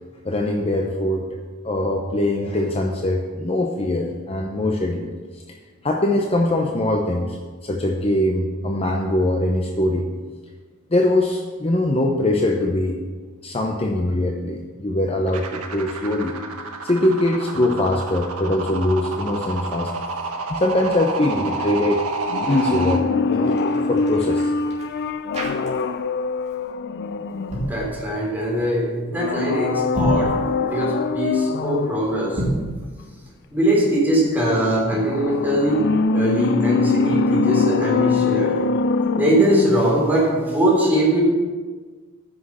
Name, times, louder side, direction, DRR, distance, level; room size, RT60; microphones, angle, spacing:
voice 1, 0.2-1.3 1.6-5.4 5.8-7.4 7.6-10.1 10.9-13.0 13.4-16.3 16.8-19.9 20.5-22.1 22.5-23.6 23.9-24.5, left 1 dB, 25° left, 1 dB, 0.7 m, -22 dB
sound 1, 15.3-23.0, right 3 dB, 90° right, 1.4 m, -29 dB
sound 2, 22.3-28.0 29.1-32.1 34.9-40.1 40.4-40.5, left 4 dB, 50° left, 0.4 m, -23 dB
sound 3, 23.2-26.1 26.4-26.7 27.3-27.8 29.8-30.3 32.2-32.7, right 1 dB, 30° right, 2.8 m, -29 dB
voice 2, 27.5-30.3 30.7-32.4 33.5-35.8 36.1-38.7 39.2-41.2, right 1 dB, 10° right, -4 dB, 3.4 m, -21 dB
9.8 x 6.3 x 7.2 m, 1.5 s
head